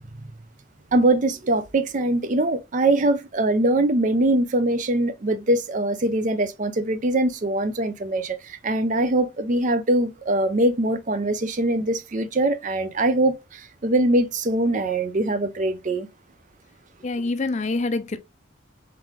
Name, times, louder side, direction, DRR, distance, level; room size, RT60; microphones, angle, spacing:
voice 1, 0.9-16.1, right 1 dB, 40° right, 0.5 m, -22 dB
voice 2, 17.0-18.2, left 3 dB, 35° left, 0.4 m, -25 dB
3.8 x 3.5 x 3.1 m
head